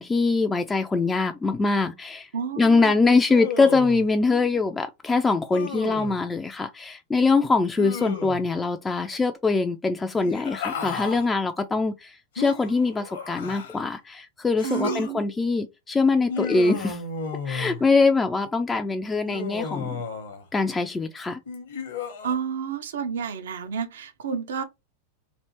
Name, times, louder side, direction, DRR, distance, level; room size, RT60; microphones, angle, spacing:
voice 1, 0.0-2.3 2.6-17.0 17.5-20.0 20.5-21.4, left 3 dB, 15° left, 0.3 m, -23 dB
voice 2, 2.3-2.9 14.6-15.3 22.2-24.6, right 7 dB, 60° right, 0.5 m, -30 dB
Human voice, 3.3-4.1 5.5-6.2 7.8-8.5 10.1-11.3 12.4-13.9 14.6-15.1 16.3-17.8 19.3-20.5 21.5-22.3, left 4 dB, 60° left, 0.9 m, -33 dB
3.2 x 2.6 x 2.9 m
figure-of-eight pair, 90°, 0 cm